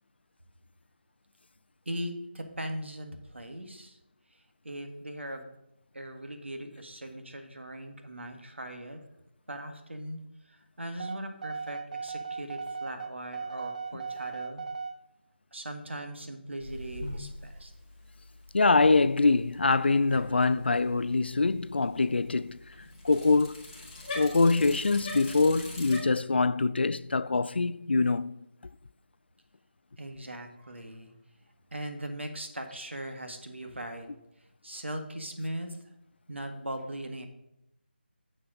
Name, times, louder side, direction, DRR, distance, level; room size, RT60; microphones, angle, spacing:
voice 1, 1.9-4.0 4.6-5.5 5.9-9.0 9.5-10.2 10.5-14.6 15.5-17.7 30.0-31.1 31.7-34.1 34.6-35.8 36.3-37.3, right 1 dB, 80° right, 1.8 m, -39 dB
sound 1, 11.0-15.0, right 5 dB, 40° right, 0.7 m, -37 dB
Bicycle, 16.6-26.0, left 2 dB, 20° left, 2.2 m, -44 dB
voice 2, 18.5-22.6 23.0-23.7 24.1-28.5, left 3 dB, 65° left, 0.4 m, -24 dB
7.2 x 6.8 x 5.2 m
figure-of-eight pair, 165°, 6 cm